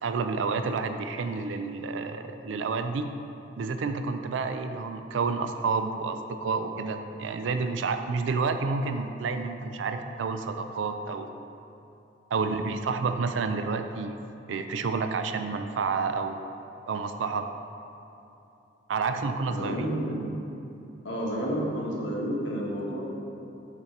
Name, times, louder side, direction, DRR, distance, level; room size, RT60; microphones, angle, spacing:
voice 1, 0.0-3.1 3.6-11.3 12.3-14.2 14.5-16.4 16.9-17.5 18.9-19.8, right 4 dB, 85° right, 8 dB, 0.4 m, -29 dB
voice 2, 19.5-20.4 21.0-23.1, equal, 85° left, -3 dB, 1.4 m, -30 dB
6.6 x 4.3 x 5.8 m, 2.9 s
head